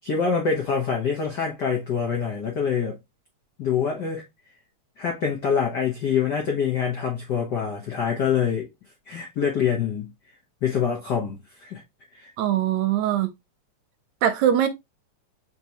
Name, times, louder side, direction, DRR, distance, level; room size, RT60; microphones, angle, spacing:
voice 1, 0.0-3.0 3.6-4.2 5.0-8.7 9.1-10.1 10.6-11.8 12.1-12.3, left 6 dB, 85° left, 0.9 m, -25 dB
voice 2, 12.4-13.3 14.2-14.7, right 10 dB, 80° right, 1.7 m, -21 dB
4.5 x 3.7 x 2.9 m
omnidirectional pair, 3.5 m